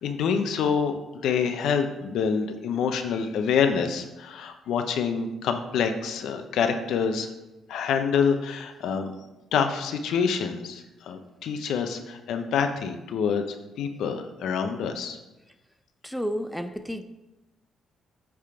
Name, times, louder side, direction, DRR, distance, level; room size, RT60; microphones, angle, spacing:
voice 1, 0.0-7.3 7.7-9.1 9.5-15.2, left 6 dB, 80° left, 7 dB, 0.7 m, -26 dB
voice 2, 16.0-17.0, equal, ahead, 9 dB, 0.4 m, -31 dB
8.5 x 3.7 x 4.4 m, 1.0 s
cardioid pair, 90°, 0 cm